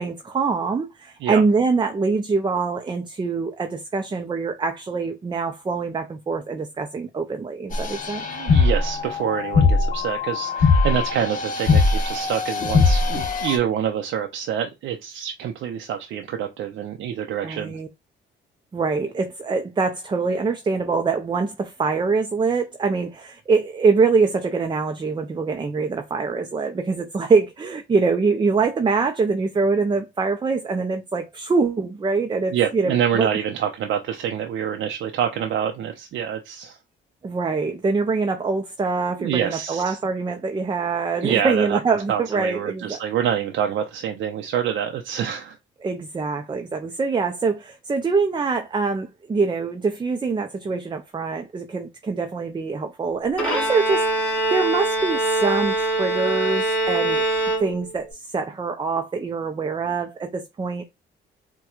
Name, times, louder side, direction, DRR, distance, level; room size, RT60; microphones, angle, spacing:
voice 1, 0.0-8.2 17.4-17.9 18.7-33.3 37.2-43.0 45.8-57.2 57.6-60.8, right 4 dB, 25° right, 0.5 m, -24 dB
sound 1, 7.7-13.6, left 4 dB, 40° left, 1.0 m, -21 dB
voice 2, 8.3-17.8 32.5-36.8 39.2-40.0 41.2-41.8 42.1-45.6, right 9 dB, 75° right, 0.6 m, -26 dB
Bowed string instrument, 53.4-58.1, right 2 dB, 10° left, 1.8 m, -23 dB
4.3 x 2.2 x 2.3 m
cardioid pair, 90°, 20 cm